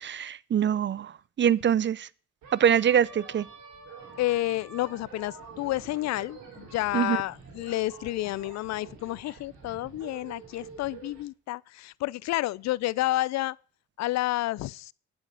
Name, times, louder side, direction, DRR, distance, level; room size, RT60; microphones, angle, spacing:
voice 1, 0.0-2.1 2.5-3.5 6.9-7.2, right 9 dB, 40° right, 0.5 m, -24 dB
sound 1, 2.4-11.2, right 4 dB, 70° right, 4.4 m, -47 dB
voice 2, 4.2-13.6 14.0-14.9, left 17 dB, 65° left, 0.4 m, -30 dB
11.0 x 7.1 x 6.8 m
supercardioid pair, 65°, 30 cm